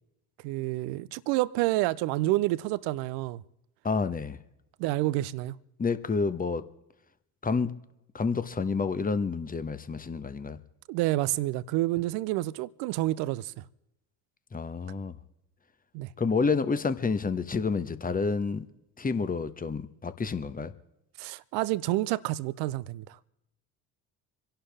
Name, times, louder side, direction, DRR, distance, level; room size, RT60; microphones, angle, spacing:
voice 1, 0.4-3.4 4.8-5.6 10.9-13.6 15.9-16.1 21.2-23.0, right 17 dB, 60° right, 0.7 m, -29 dB
voice 2, 3.8-4.4 5.8-6.7 7.4-7.7 8.1-10.6 14.5-15.1 16.2-18.6 19.0-20.7, left 4 dB, 20° left, 1.1 m, -29 dB
27.0 x 11.5 x 3.5 m
hypercardioid pair, 60°, 44 cm